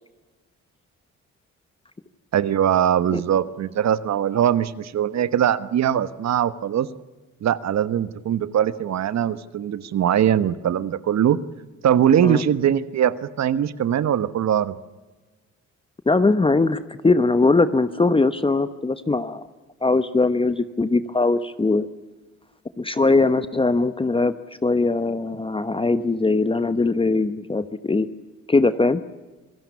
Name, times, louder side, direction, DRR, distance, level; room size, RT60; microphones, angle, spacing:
voice 1, 2.3-6.9 7.4-11.4 11.8-14.7, right 10 dB, 60° right, 15 dB, 1.3 m, -21 dB
voice 2, 16.1-19.4 19.8-21.9 22.8-24.3 24.6-28.1 28.5-29.0, left 3 dB, 20° left, 12 dB, 1.0 m, -20 dB
27.0 x 17.5 x 8.4 m, 1.2 s
cardioid pair, 90°, 30 cm